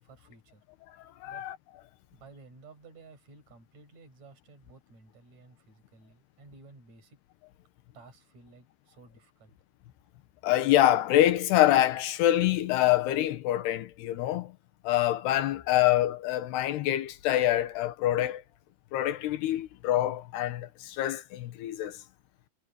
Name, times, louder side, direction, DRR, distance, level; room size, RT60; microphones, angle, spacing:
voice 1, 0.0-0.6 1.3-1.4 2.1-7.2 7.9-9.5, right 3 dB, 40° right, 8.0 m, -54 dB
voice 2, 1.2-1.6 10.4-14.5 14.8-18.4 18.9-22.0, left 13 dB, 75° left, 3.1 m, -25 dB
omnidirectional pair, 5.0 m